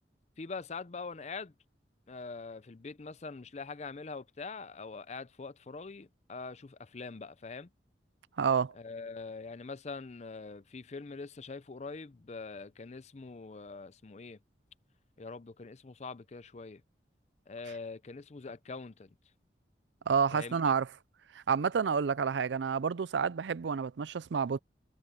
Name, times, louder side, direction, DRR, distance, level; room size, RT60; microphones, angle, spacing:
voice 1, 0.4-1.5 2.1-7.7 8.8-14.4 15.2-16.8 17.5-19.1 20.3-20.7, left 4 dB, 40° left, 0.5 m, -43 dB
voice 2, 8.4-8.7 20.1-20.9 21.3-24.6, right 6 dB, 80° right, 0.5 m, -29 dB
head